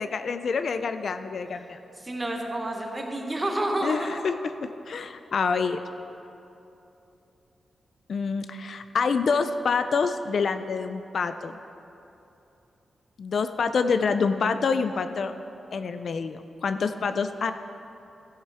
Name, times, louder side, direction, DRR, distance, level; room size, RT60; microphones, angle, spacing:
voice 1, 0.0-1.8 3.8-5.8 8.1-11.6 13.2-15.3 15.7-17.5, left 5 dB, 55° left, 10 dB, 0.3 m, -27 dB
voice 2, 2.0-4.2, right 1 dB, 20° right, 2 dB, 1.0 m, -29 dB
14.5 x 6.5 x 4.8 m, 2.9 s
wide cardioid pair, 155°, 0 cm